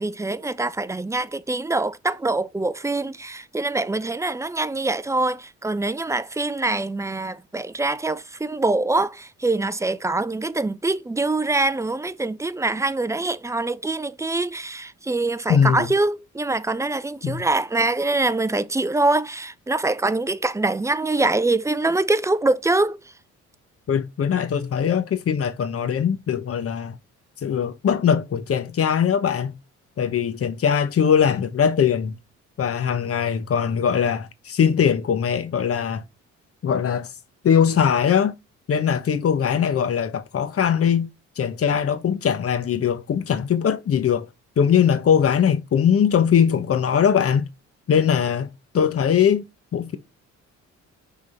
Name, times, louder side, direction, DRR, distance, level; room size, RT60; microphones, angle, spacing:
voice 1, 0.0-23.0, right 2 dB, 10° right, 0.4 m, -24 dB
voice 2, 15.5-15.9 17.2-17.4 23.9-27.0 27.4-29.5 30.0-32.2 32.6-36.0 36.6-37.1 37.4-38.3 38.7-41.1 41.4-44.3 44.6-47.5 47.9-49.5 49.7-50.0, left 8 dB, 50° left, 1.0 m, -21 dB
6.2 x 3.7 x 4.3 m
cardioid pair, 90°, 30 cm